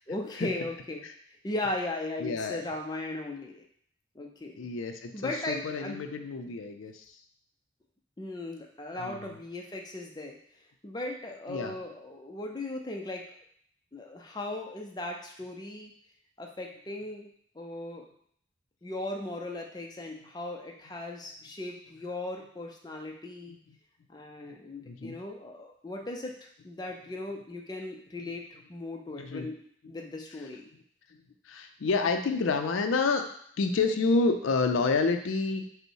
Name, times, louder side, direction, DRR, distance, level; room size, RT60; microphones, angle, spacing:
voice 1, 0.1-3.6 4.1-4.7 5.1-6.0 8.2-10.4 10.8-13.2 13.9-15.9 16.4-17.3 17.5-18.0 18.8-23.6 24.1-29.6 29.9-30.7, left 2 dB, 20° left, 1 dB, 0.4 m, -37 dB
voice 2, 2.2-2.6 4.6-7.2 9.0-9.3 11.5-11.7 23.5-23.7 24.4-24.6 24.9-25.2 28.2-28.3 29.2-29.5 31.1-33.2 33.6-35.7, left 4 dB, 85° left, 7 dB, 0.4 m, -29 dB
5.3 x 2.1 x 4.6 m, 0.64 s
head